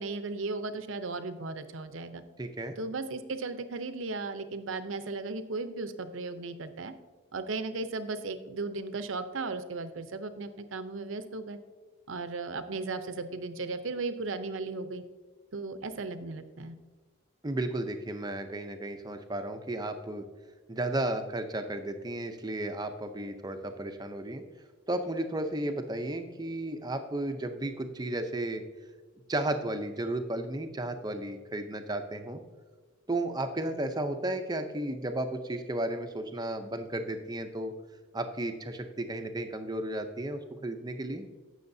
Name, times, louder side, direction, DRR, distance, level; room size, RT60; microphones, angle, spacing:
voice 1, 0.0-2.2 2.8-6.9 7.3-11.6 12.1-15.0 15.5-16.7, right 3 dB, 70° right, 10 dB, 0.7 m, -36 dB
voice 2, 2.4-2.8 17.4-20.3 20.7-24.4 24.9-28.6 29.3-32.4 33.1-37.7 38.1-41.3, right 1 dB, 20° right, 6 dB, 0.6 m, -33 dB
16.5 x 6.4 x 2.7 m, 1.4 s
head